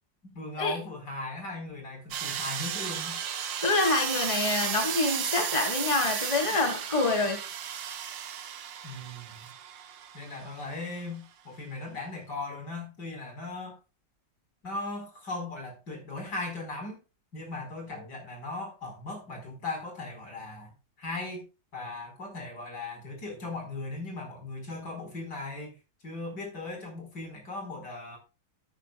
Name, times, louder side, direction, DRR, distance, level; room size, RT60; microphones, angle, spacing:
voice 1, 0.2-3.2 8.8-9.5 10.1-13.8 14.6-17.0 17.3-21.4 21.7-25.8 26.0-28.2, left 2 dB, 60° left, 5.3 m, -38 dB
sound 1, 2.1-10.7, right 8 dB, 80° right, 1.8 m, -34 dB
voice 2, 3.6-7.4, left 3 dB, 20° left, 1.6 m, -26 dB
13.5 x 9.5 x 2.3 m
omnidirectional pair, 2.0 m